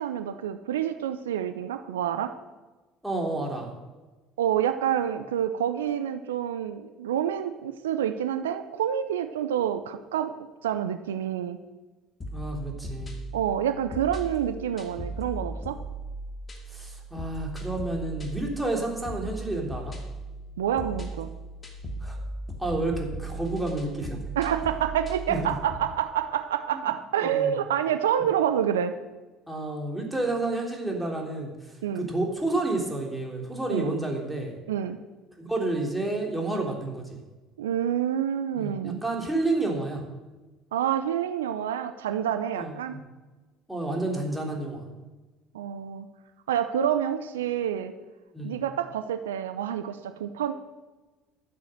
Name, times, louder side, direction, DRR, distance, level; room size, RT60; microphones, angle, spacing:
voice 1, 0.0-2.3 4.4-10.3 10.6-11.6 13.3-15.8 20.6-21.3 24.4-28.9 31.8-32.1 33.7-34.0 34.7-35.0 37.6-39.0 40.7-43.0 45.5-46.1 46.5-47.9 48.4-50.5, right 9 dB, 80° right, 9 dB, 0.6 m, -28 dB
voice 2, 3.0-3.7 12.3-13.1 16.7-20.0 22.0-22.2 22.6-24.2 25.3-25.5 26.7-26.8 27.2-27.5 29.5-31.5 31.9-34.5 35.4-37.2 38.6-40.0 42.5-43.0 43.7-44.8 48.3-48.6, right 2 dB, 5° right, 0 dB, 3.5 m, -30 dB
sound 1, 12.2-25.9, right 1 dB, 30° left, 2.2 m, -37 dB
12.0 x 7.7 x 6.6 m, 1.2 s
hypercardioid pair, 60°, 0 cm